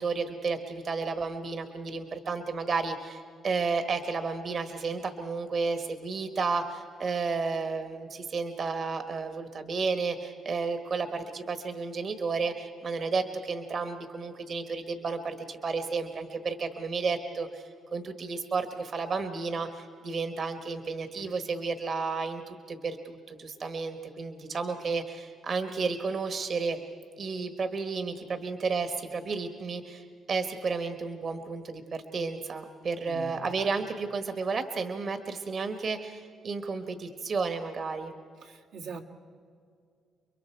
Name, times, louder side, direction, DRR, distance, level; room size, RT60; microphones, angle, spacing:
voice 1, 0.0-17.6 17.9-26.8 27.2-38.1, right 4 dB, 50° right, 8 dB, 1.4 m, -32 dB
voice 2, 33.1-33.5 38.4-39.0, right 4 dB, 85° right, -1 dB, 1.9 m, -42 dB
30.0 x 22.5 x 4.6 m, 2.3 s
cardioid pair, 90°, 0 cm